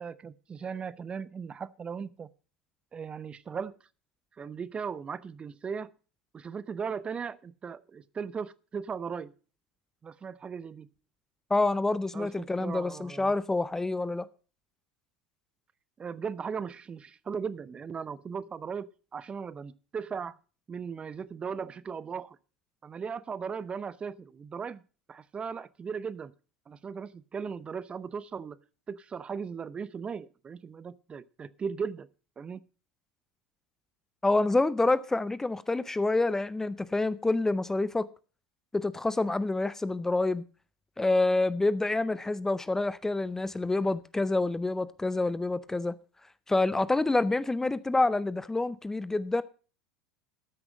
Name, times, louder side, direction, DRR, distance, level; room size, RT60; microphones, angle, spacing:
voice 1, 0.0-2.3 2.9-3.8 4.4-5.9 6.3-9.3 10.0-10.9 12.1-13.3 16.0-20.4 20.7-22.4 22.8-24.8 25.1-26.3 26.7-28.6 28.9-32.1 32.4-32.6, right 6 dB, 30° right, 0.7 m, -37 dB
voice 2, 11.5-14.3 34.2-38.1 38.7-40.4 41.0-45.9 46.5-49.4, left 2 dB, 10° left, 0.6 m, -27 dB
13.5 x 6.1 x 6.2 m
hypercardioid pair, 80°, 4 cm